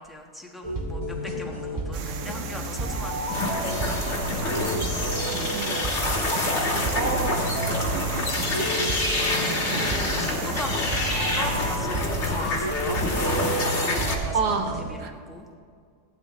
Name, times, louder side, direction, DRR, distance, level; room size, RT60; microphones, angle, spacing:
voice 1, 0.0-3.5 9.7-13.0 14.1-14.4 14.9-15.5, left 1 dB, ahead, 0 dB, 1.1 m, -39 dB
sound 1, 0.6-14.9, right 1 dB, 20° right, 1.8 m, -31 dB
sound 2, 1.9-11.8, right 7 dB, 65° right, 0.9 m, -37 dB
sound 3, 3.3-14.2, left 2 dB, 45° left, 1.9 m, -27 dB
voice 2, 5.5-6.0 6.9-8.9 9.7-10.2 14.3-15.1, right 5 dB, 90° right, 5 dB, 1.6 m, -31 dB
16.0 x 11.5 x 3.1 m, 2.1 s
omnidirectional pair, 1.7 m